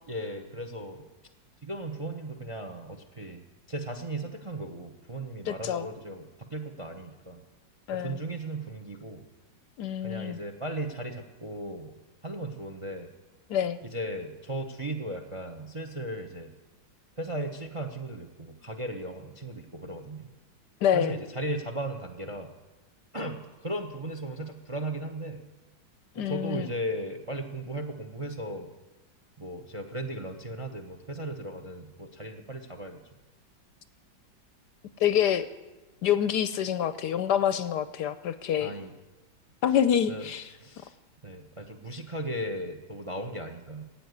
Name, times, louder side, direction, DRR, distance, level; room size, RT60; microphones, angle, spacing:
voice 1, 0.1-1.1 1.6-7.4 7.9-9.2 10.0-12.0 12.2-13.1 13.8-16.5 17.2-20.3 20.9-22.5 23.1-25.4 26.2-28.7 29.4-33.0 38.6-38.9 40.1-40.3 40.6-41.0 41.2-43.8, right 1 dB, 25° right, 6 dB, 0.7 m, -36 dB
voice 2, 5.4-5.9 7.9-8.2 9.8-10.4 13.5-13.8 20.8-21.2 26.2-26.7 35.0-35.5 36.0-38.7 39.6-40.5, left 9 dB, 70° left, 13 dB, 1.1 m, -26 dB
15.0 x 8.7 x 9.5 m, 1.1 s
omnidirectional pair, 2.0 m